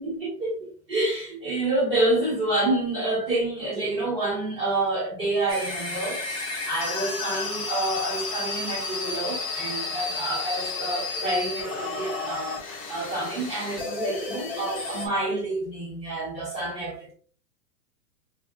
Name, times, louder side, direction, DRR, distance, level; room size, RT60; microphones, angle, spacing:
voice 1, 0.0-17.1, right 2 dB, 15° right, 1.0 m, -28 dB
sound 1, 5.5-15.1, left 3 dB, 25° left, 0.5 m, -32 dB
4.5 x 2.3 x 2.5 m
hypercardioid pair, 180°, 47 cm